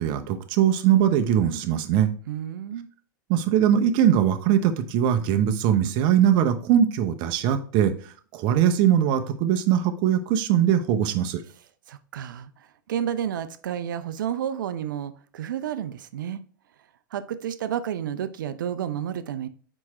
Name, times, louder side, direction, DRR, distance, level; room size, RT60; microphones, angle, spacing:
voice 1, 0.0-2.1 3.3-11.4, right 10 dB, 50° right, 7 dB, 0.9 m, -21 dB
voice 2, 2.3-2.9 11.9-16.4 17.1-19.5, right 9 dB, 75° right, 12 dB, 0.6 m, -31 dB
4.9 x 4.6 x 4.2 m, 0.43 s
hypercardioid pair, 100°, 11 cm